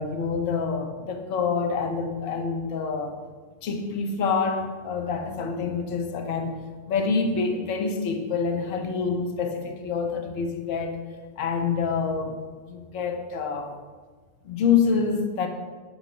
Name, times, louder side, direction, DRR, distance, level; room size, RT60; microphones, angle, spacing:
voice 1, 0.0-3.1 3.6-6.6 6.9-11.0 11.4-12.4 12.6-13.7 14.4-15.5, left 5 dB, 45° left, 5 dB, 0.8 m, -26 dB
8.1 x 5.2 x 3.7 m, 1.4 s
figure-of-eight pair, 90°, 0 cm